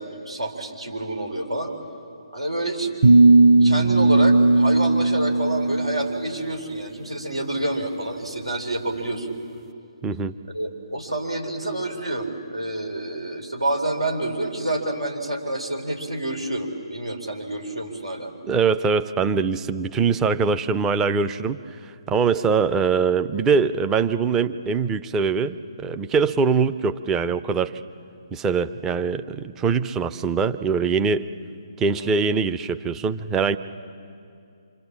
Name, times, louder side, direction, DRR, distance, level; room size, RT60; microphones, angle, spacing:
voice 1, 0.0-1.7 2.3-3.0 3.6-9.4 10.5-18.3 32.0-32.1, right 1 dB, 85° right, 3 dB, 4.2 m, -28 dB
sound 1, 3.0-6.2, right 2 dB, 40° right, 1.2 m, -16 dB
voice 2, 10.0-10.3 18.4-21.6 22.1-27.7 28.3-31.3 31.8-33.6, right 5 dB, 15° right, 10 dB, 0.6 m, -22 dB
27.0 x 26.0 x 7.5 m, 2.6 s
figure-of-eight pair, 140°, 3 cm